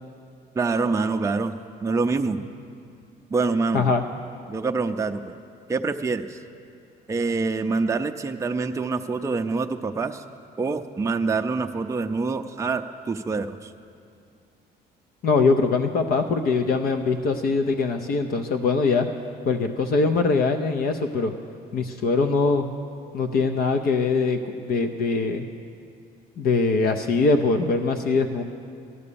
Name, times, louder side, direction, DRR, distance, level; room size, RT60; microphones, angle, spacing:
voice 1, 0.5-1.6 1.8-2.4 3.3-3.9 4.5-5.4 5.7-6.4 7.1-10.2 10.6-13.7, right 4 dB, 15° right, 5 dB, 0.5 m, -25 dB
voice 2, 15.2-19.1 19.5-21.3 21.7-22.7 23.1-25.5 26.4-28.4, left 4 dB, 60° left, 5 dB, 0.7 m, -22 dB
14.0 x 9.8 x 6.9 m, 2.4 s
cardioid pair, 115°, 17 cm